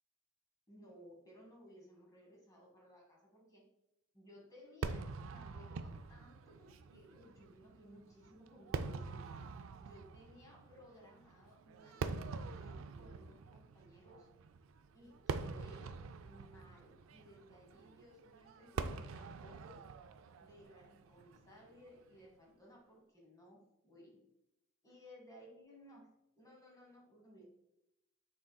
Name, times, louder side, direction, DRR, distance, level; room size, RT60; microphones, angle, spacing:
voice 1, 0.7-3.6 4.1-9.4 9.8-14.3 14.9-15.9 16.2-19.8 20.4-24.2 24.8-26.1 26.4-27.4, equal, 20° left, -1 dB, 1.2 m, -59 dB
Fireworks, 4.8-22.2, right 4 dB, 80° right, 0.3 m, -45 dB
6.0 x 3.9 x 2.3 m, 0.88 s
head